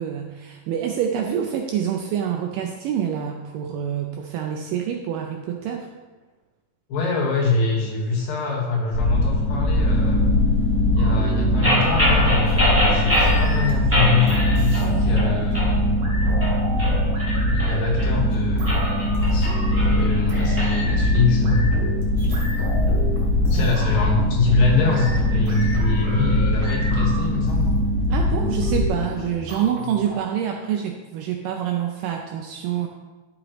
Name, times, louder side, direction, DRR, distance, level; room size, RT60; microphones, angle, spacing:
voice 1, 0.0-5.9 23.5-23.7 28.1-32.9, right 9 dB, 80° right, 2 dB, 2.0 m, -26 dB
voice 2, 6.9-10.2 10.9-16.1 17.5-19.5 19.9-21.8 23.5-27.7, left 4 dB, 70° left, -3 dB, 3.2 m, -24 dB
sound 1, 8.9-28.9, left 1 dB, 25° left, 3.2 m, -21 dB
sound 2, 11.0-13.9 14.3-15.7 16.0-30.1, right 1 dB, 60° right, 3.5 m, -34 dB
sound 3, 11.6-13.4 13.9-14.9 15.2-15.7 16.2-18.1 18.5-20.7, equal, 5° right, 1.2 m, -24 dB
11.0 x 7.8 x 3.1 m, 1.2 s
omnidirectional pair, 4.4 m